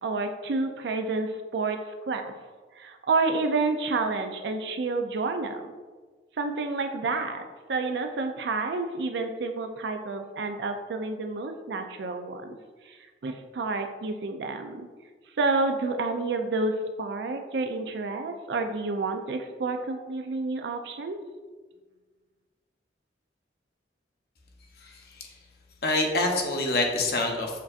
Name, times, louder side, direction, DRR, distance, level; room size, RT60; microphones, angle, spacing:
voice 1, 0.0-1.8 2.1-2.3 2.8-5.6 6.4-12.6 12.9-14.9 15.4-21.2, right 3 dB, 75° right, 6 dB, 0.4 m, -29 dB
voice 2, 24.8-25.3 25.8-27.6, left 2 dB, 60° left, 1 dB, 0.7 m, -26 dB
7.2 x 2.7 x 2.4 m, 1.4 s
head